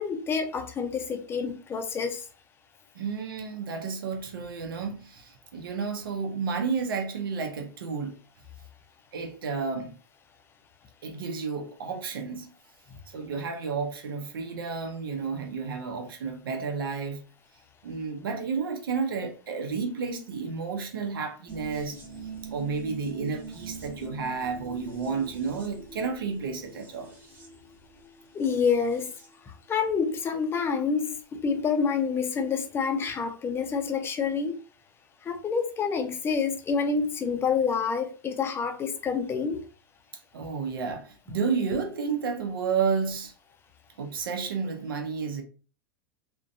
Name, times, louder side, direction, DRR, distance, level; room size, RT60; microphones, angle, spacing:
voice 1, 0.0-2.3 28.3-29.1 29.5-34.5 35.2-39.6, left 5 dB, 20° left, 0.4 m, -28 dB
voice 2, 2.9-8.2 9.1-9.9 11.0-12.5 13.1-17.2 17.8-22.0 22.5-27.1 40.3-43.3 44.0-45.4, right 5 dB, 90° right, 0.6 m, -31 dB
sound 1, 21.5-29.4 29.7-29.8, right 4 dB, 15° right, 0.8 m, -44 dB
2.5 x 2.2 x 2.5 m
hypercardioid pair, 120°, 11 cm